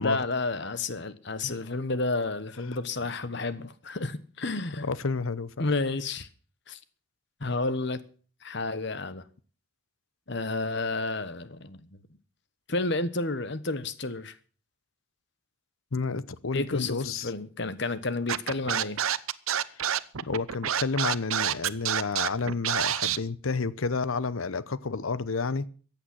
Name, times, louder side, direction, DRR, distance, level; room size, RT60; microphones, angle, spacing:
voice 1, 0.0-4.9 5.6-6.3 6.7-6.8 7.4-8.0 8.4-9.2 10.3-12.0 12.7-14.4 16.5-19.0, left 3 dB, 55° left, 1.2 m, -31 dB
voice 2, 4.8-5.7 15.9-17.3 19.7-19.8 20.2-25.6, left 4 dB, 75° left, 0.8 m, -30 dB
Scratching (performance technique), 18.3-23.2, right 9 dB, 85° right, 0.8 m, -27 dB
15.0 x 9.0 x 7.6 m
head